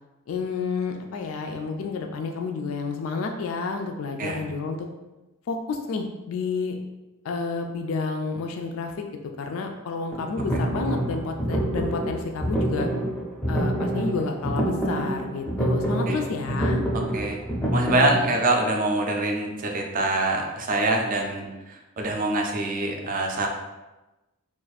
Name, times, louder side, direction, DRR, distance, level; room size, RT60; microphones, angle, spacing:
voice 1, 0.3-4.9 5.5-6.8 7.2-9.1 9.4-12.9 13.5-16.8, left 4 dB, 70° left, 3 dB, 0.3 m, -30 dB
sound 1, 10.1-18.2, right 1 dB, 10° left, 0.5 m, -27 dB
voice 2, 17.7-23.5, right 2 dB, 40° right, 2 dB, 0.5 m, -25 dB
2.5 x 2.4 x 4.0 m, 1.1 s
head